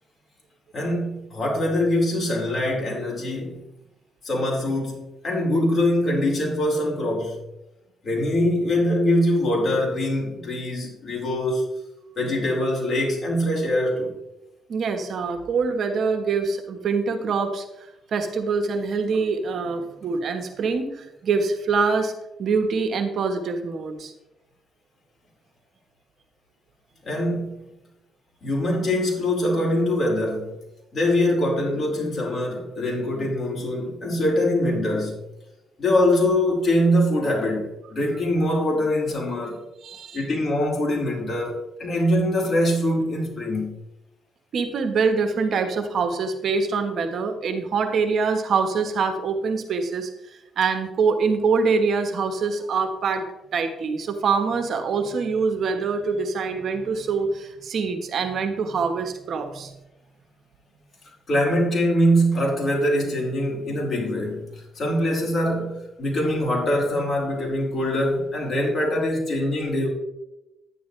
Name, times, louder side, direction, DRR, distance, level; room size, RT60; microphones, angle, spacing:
voice 1, 0.7-3.6 4.2-7.4 8.0-11.7 12.2-14.1 27.0-27.6 28.4-30.5 30.9-35.2 35.8-39.6 40.1-43.7 61.3-69.9, left 1 dB, 40° left, -3 dB, 4.5 m, -23 dB
voice 2, 14.7-17.6 18.1-22.1 22.4-24.1 39.8-40.2 44.5-50.1 50.6-53.3 53.5-59.7, right 4 dB, 60° right, 6 dB, 1.4 m, -24 dB
11.0 x 10.0 x 3.3 m, 0.93 s
cardioid pair, 90°, 0 cm